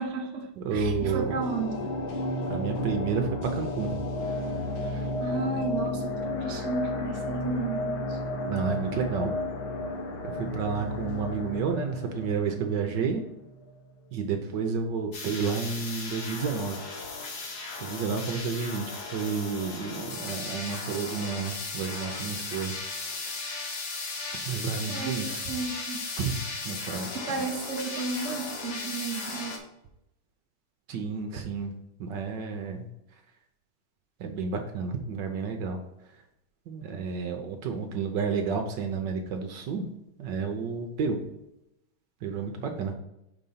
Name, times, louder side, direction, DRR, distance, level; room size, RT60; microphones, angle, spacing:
voice 1, 0.0-1.9 5.2-8.4 24.9-26.0 27.1-29.6, right 3 dB, 50° right, 2 dB, 0.9 m, -33 dB
voice 2, 0.6-1.4 2.4-4.0 4.8-5.1 8.5-9.4 10.2-13.2 14.1-16.9 17.3-23.4 24.5-25.4 26.2-26.4 26.6-27.1 27.4-27.5 30.9-31.7 32.0-32.9 34.2-35.8 36.7-39.9 40.2-41.2 42.2-42.9, right 5 dB, 70° right, 4 dB, 1.3 m, -31 dB
sound 1, 0.8-13.8 14.2-14.3, left 1 dB, 85° left, 1.9 m, -33 dB
sound 2, 15.1-29.6, left 3 dB, 60° left, 1.5 m, -36 dB
5.5 x 4.0 x 5.6 m, 0.86 s
omnidirectional pair, 2.2 m